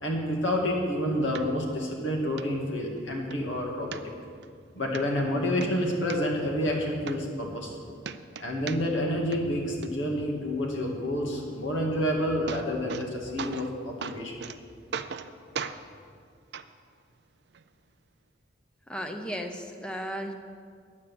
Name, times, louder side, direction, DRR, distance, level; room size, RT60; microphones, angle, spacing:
voice 1, 0.0-3.9 4.8-7.7 8.4-14.3, equal, 85° left, -1 dB, 2.0 m, -29 dB
sound 1, 1.3-1.4 1.9-2.0 2.4-2.5 2.9-3.4 3.9-4.5 4.9-5.0 5.4-6.2 6.7-6.8 7.1-7.7 8.0-9.1 9.3-9.9 11.9-12.0 12.2-13.1 13.4-13.7 14.0-14.6 14.9-15.3 15.5-15.8 16.5-16.6 17.5-17.6, right 6 dB, 60° right, 0.5 m, -37 dB
voice 2, 18.9-20.3, equal, 5° left, 4 dB, 0.7 m, -35 dB
10.5 x 8.5 x 7.0 m, 2.1 s
head